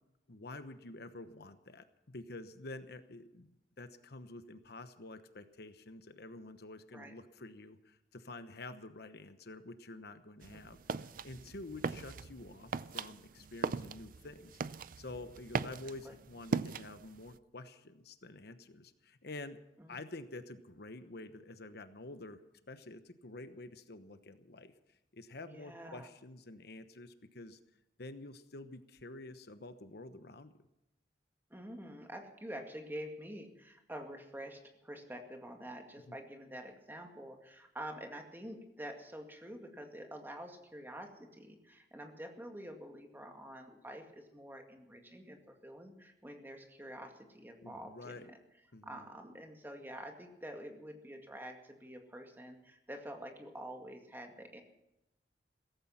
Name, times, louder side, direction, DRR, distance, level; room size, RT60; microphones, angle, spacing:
voice 1, 0.3-3.5 3.8-14.5 15.0-19.6 19.9-24.7 25.1-27.6 28.0-30.5 36.1-36.2 47.6-48.3 48.7-49.1, left 2 dB, 65° left, 10 dB, 1.0 m, -49 dB
sound 1, 10.4-17.4, right 4 dB, 50° right, 0.5 m, -40 dB
voice 2, 25.5-26.1 31.5-48.4 48.8-54.6, equal, 10° right, 3 dB, 2.1 m, -47 dB
17.0 x 15.0 x 5.8 m, 0.88 s
head